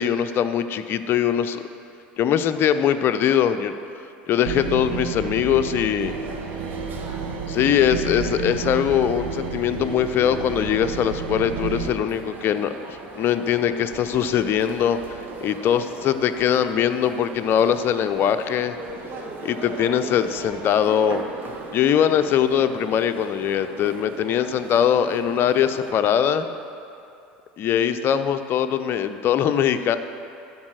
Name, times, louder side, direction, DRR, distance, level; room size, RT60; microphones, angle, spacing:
voice 1, 0.0-1.6 2.2-3.7 4.3-6.1 7.5-15.0 15.4-18.7 19.4-21.2 21.7-26.5 27.6-30.0, left 9 dB, 45° left, 10 dB, 0.5 m, -21 dB
sound 1, 4.5-11.9, right 6 dB, 65° right, 1.0 m, -31 dB
sound 2, 6.0-25.9, right 3 dB, 40° right, 1.4 m, -38 dB
12.5 x 4.8 x 6.4 m, 2.7 s
hypercardioid pair, 80°, 5 cm